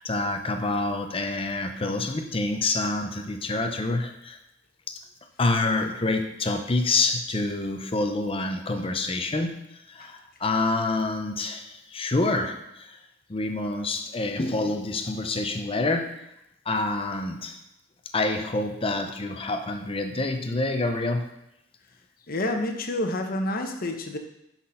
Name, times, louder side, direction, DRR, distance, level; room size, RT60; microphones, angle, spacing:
voice 1, 0.0-4.4 4.9-5.0 5.4-9.5 9.9-13.0 13.3-16.1 16.7-17.6 18.1-21.3, left 2 dB, 30° left, 6 dB, 0.7 m, -27 dB
voice 2, 22.3-24.2, left 1 dB, 50° left, 5 dB, 0.9 m, -28 dB
6.4 x 5.9 x 5.6 m, 0.85 s
head